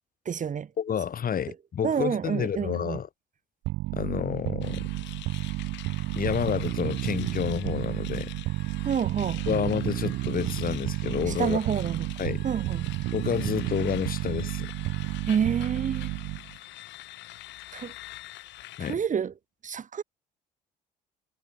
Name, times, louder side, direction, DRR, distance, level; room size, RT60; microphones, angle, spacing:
voice 1, 0.2-0.7 1.5-1.6 1.8-3.0 8.8-9.6 11.3-12.1 12.4-12.9 15.3-16.1 17.7-17.9 18.8-19.3 19.6-20.0, right 7 dB, 40° right, 1.4 m, -28 dB
voice 2, 0.8-3.1 3.9-4.9 6.2-8.3 9.5-11.6 12.2-12.4 13.1-14.7 18.8-19.0, left 8 dB, 45° left, 2.2 m, -29 dB
sound 1, 3.6-16.6, right 19 dB, 55° right, 0.5 m, -31 dB
sound 2, 4.6-18.9, left 16 dB, 60° left, 1.4 m, -45 dB
hypercardioid pair, 55°, 21 cm